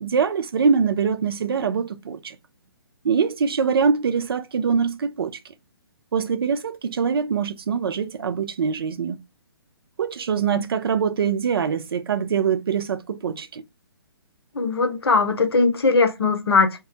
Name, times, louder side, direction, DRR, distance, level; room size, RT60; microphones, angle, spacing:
voice 1, 0.0-2.4 3.0-5.4 6.1-9.2 10.0-13.6, right 6 dB, 65° right, 0.4 m, -23 dB
voice 2, 14.5-16.8, left 4 dB, 75° left, 0.7 m, -20 dB
2.2 x 2.0 x 2.8 m
figure-of-eight pair, 135°, 13 cm